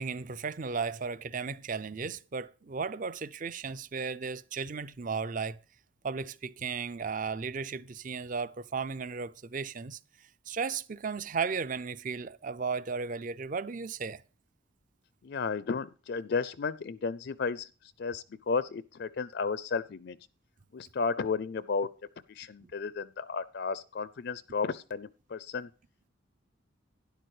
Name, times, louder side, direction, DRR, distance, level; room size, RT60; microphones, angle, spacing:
voice 1, 0.0-5.6 6.0-10.0 10.5-14.2, right 5 dB, 40° right, 0.5 m, -35 dB
voice 2, 15.2-17.7 18.0-20.2 20.7-21.9 22.3-25.7, left 5 dB, 55° left, 0.4 m, -33 dB
12.0 x 10.5 x 3.2 m
head